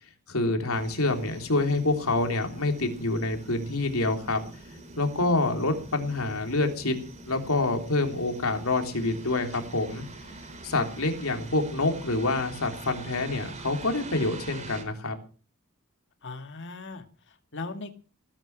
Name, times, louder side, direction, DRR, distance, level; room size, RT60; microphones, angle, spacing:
voice 1, 0.3-4.4 5.0-7.0 7.3-10.0 10.6-15.1, left 2 dB, 75° left, 4 dB, 3.4 m, -27 dB
sound 1, 0.7-14.8, right 2 dB, 35° right, 4.0 m, -44 dB
voice 2, 16.2-17.9, left 3 dB, 60° left, 6 dB, 2.2 m, -39 dB
19.0 x 10.0 x 6.1 m, 0.37 s
head